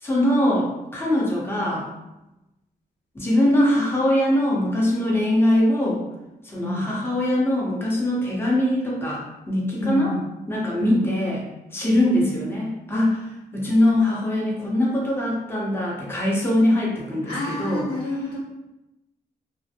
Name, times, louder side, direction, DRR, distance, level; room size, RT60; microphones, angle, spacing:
voice 1, 0.0-1.9 3.1-6.0 6.4-10.1 10.5-11.4 11.7-13.2 13.5-17.9, left 1 dB, 15° left, -5 dB, 0.8 m, -22 dB
voice 2, 9.8-10.2 10.8-11.1 12.0-12.2 17.2-18.4, equal, 85° left, -8 dB, 1.1 m, -28 dB
2.5 x 2.1 x 2.7 m, 0.96 s
cardioid pair, 75°, 17 cm